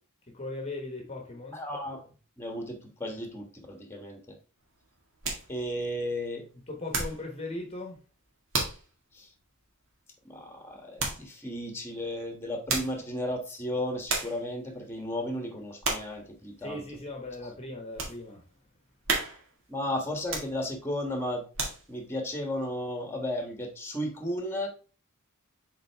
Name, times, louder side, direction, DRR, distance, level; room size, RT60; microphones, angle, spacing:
voice 1, 0.3-1.6 6.7-8.0 16.6-18.4, left 2 dB, 30° left, 2 dB, 1.1 m, -38 dB
voice 2, 1.5-2.0 2.4-4.4 5.5-6.4 9.1-9.3 10.2-16.8 19.7-21.4 21.9-24.7, left 1 dB, 10° left, 4 dB, 1.3 m, -34 dB
sound 1, 4.6-7.3 7.7-8.0 8.5-8.9 9.3-9.4 11.0-11.3 12.4-13.1 13.7-13.8 14.1-14.5 14.9-15.3 15.8-16.2 16.7-16.8 17.3-18.2 18.6-18.7 19.0-19.6 20.2-20.9 21.3-22.1 22.5-22.6, right 3 dB, 60° right, 1.9 m, -33 dB
7.6 x 3.8 x 3.4 m, 0.36 s
head